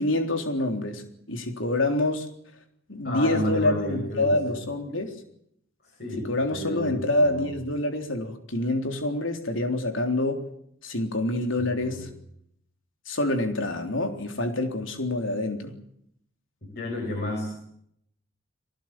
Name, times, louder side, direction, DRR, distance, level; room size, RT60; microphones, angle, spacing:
voice 1, 0.0-2.3 2.9-5.2 6.3-10.4 10.8-12.1 13.1-15.8, left 1 dB, 80° left, 6 dB, 3.7 m, -26 dB
voice 2, 3.0-4.6 5.8-7.5 11.6-12.1 16.6-17.6, left 1 dB, 50° left, 1 dB, 7.7 m, -32 dB
23.0 x 19.0 x 9.1 m, 0.71 s
head